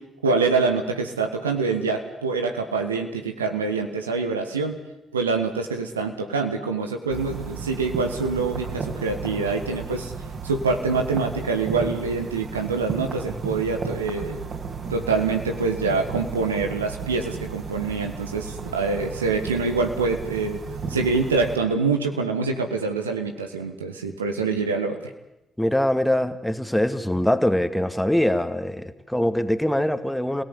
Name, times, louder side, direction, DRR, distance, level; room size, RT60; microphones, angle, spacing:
voice 1, 0.2-4.8 5.1-10.1 10.4-14.4 14.9-20.6 20.9-25.0, right 4 dB, 85° right, 5 dB, 1.7 m, -25 dB
sound 1, 7.1-21.6, right 5 dB, 50° right, 4.9 m, -34 dB
voice 2, 25.6-30.4, left 1 dB, 5° left, 10 dB, 2.3 m, -23 dB
27.0 x 17.5 x 9.9 m, 0.91 s
figure-of-eight pair, 40°, 0 cm